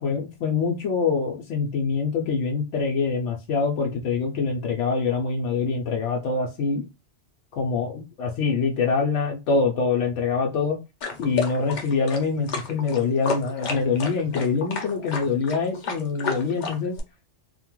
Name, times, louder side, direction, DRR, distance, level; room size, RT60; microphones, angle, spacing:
voice 1, 0.0-6.8 7.5-10.8 11.2-17.0, left 5 dB, 75° left, 0.9 m, -25 dB
sound 1, 11.0-17.0, left 5 dB, 50° left, 0.6 m, -31 dB
2.8 x 2.2 x 2.9 m
omnidirectional pair, 1.3 m